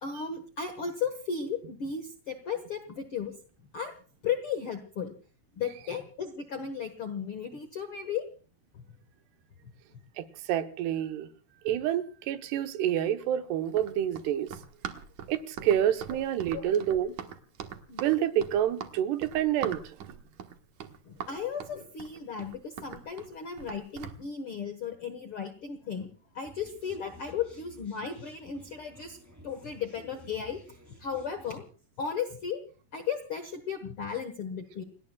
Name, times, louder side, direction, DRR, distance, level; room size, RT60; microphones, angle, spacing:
voice 1, 0.0-3.3 3.7-3.9 4.2-5.1 5.6-8.2 8.7-8.8 16.5-16.8 17.9-18.0 21.0-26.1 26.3-29.2 29.4-30.6 31.0-31.6 32.0-32.6 32.9-34.8, left 7 dB, 65° left, 8 dB, 1.3 m, -35 dB
voice 2, 10.2-11.3 11.6-14.5 15.3-17.1 18.0-20.2, right 10 dB, 85° right, 7 dB, 3.2 m, -28 dB
Run, 13.7-24.2, right 8 dB, 60° right, 2.2 m, -42 dB
sound 1, 26.4-31.6, equal, 5° right, 2.2 m, -53 dB
30.0 x 18.0 x 2.3 m, 0.38 s
omnidirectional pair, 4.6 m